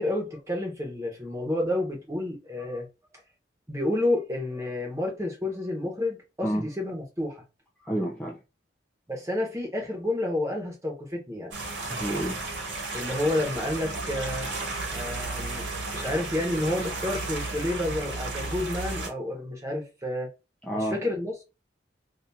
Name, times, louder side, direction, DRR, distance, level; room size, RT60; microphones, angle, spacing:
voice 1, 0.0-2.9 3.7-7.4 9.1-11.5 12.9-14.5 14.9-15.7 15.9-20.3 20.9-21.4, left 1 dB, 15° right, 1.2 m, -30 dB
voice 2, 7.8-8.4 11.9-12.4 20.6-21.0, right 1 dB, 5° left, 0.5 m, -30 dB
sound 1, 11.5-19.1, right 2 dB, 70° right, 1.3 m, -33 dB
2.8 x 2.7 x 3.4 m
head